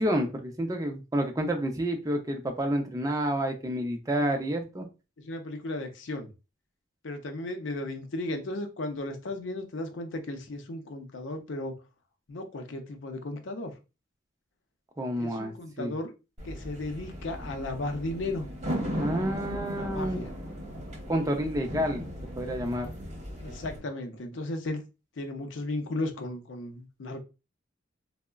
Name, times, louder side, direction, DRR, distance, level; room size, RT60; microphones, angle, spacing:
voice 1, 0.0-4.9 15.0-15.9 19.0-20.2 21.1-22.0 22.4-22.9, equal, 20° right, 3 dB, 0.4 m, -29 dB
voice 2, 5.2-6.3 7.0-11.7 12.3-13.7 15.2-16.1 16.4-18.5 19.7-20.3 23.4-24.8 25.2-27.2, left 2 dB, 70° left, 6 dB, 0.5 m, -35 dB
sound 1, 16.4-23.8, equal, 35° right, 1.0 m, -37 dB
3.4 x 2.0 x 2.2 m, 0.29 s
head